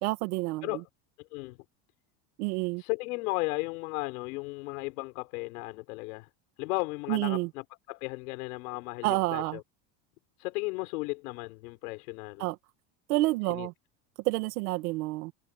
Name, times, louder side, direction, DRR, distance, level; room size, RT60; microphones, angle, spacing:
voice 1, 0.0-0.8 2.4-2.8 7.1-7.5 9.0-9.6 12.4-12.6 13.1-13.7 14.2-15.3, right 21 dB, 85° right, 2.1 m, -29 dB
voice 2, 1.2-1.6 2.8-6.3 6.6-9.6 10.4-12.5 13.5-13.7, left 25 dB, 85° left, 5.6 m, -35 dB
cardioid pair, 175°, 43 cm